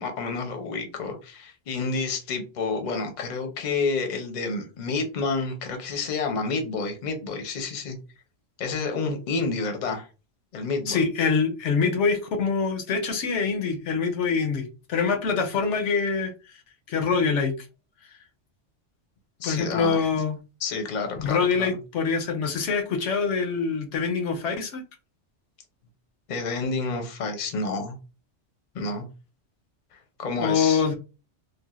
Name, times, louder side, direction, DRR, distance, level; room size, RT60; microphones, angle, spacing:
voice 1, 0.0-8.0 8.6-10.1 10.5-11.0 19.4-20.2 20.6-21.8 26.3-28.0 28.7-29.1 29.9-30.8, left 4 dB, 45° left, 0.7 m, -29 dB
voice 2, 10.9-16.3 16.9-17.6 19.4-20.4 21.1-24.8 30.4-30.9, left 5 dB, 80° left, 1.0 m, -25 dB
3.2 x 2.4 x 2.4 m
omnidirectional pair, 1.2 m